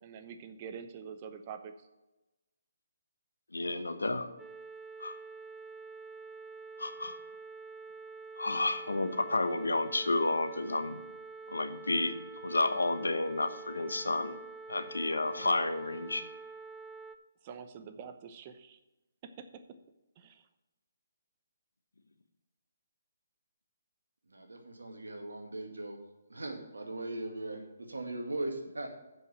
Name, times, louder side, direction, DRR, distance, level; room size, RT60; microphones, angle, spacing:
voice 1, 0.0-1.7 17.4-18.8 19.2-19.6 20.2-20.4, right 7 dB, 35° right, 9 dB, 0.8 m, -46 dB
voice 2, 3.5-4.3 5.0-5.1 6.8-7.1 8.4-11.0 11.5-12.1 12.4-14.4 14.7-16.2, left 2 dB, 85° left, 9 dB, 1.0 m, -31 dB
sound 1, 4.4-17.2, right 4 dB, 5° right, 0.5 m, -47 dB
voice 3, 24.3-26.0 26.3-28.9, right 2 dB, 85° right, 3 dB, 2.0 m, -39 dB
7.5 x 5.6 x 7.3 m, 1.0 s
figure-of-eight pair, 145°, 0 cm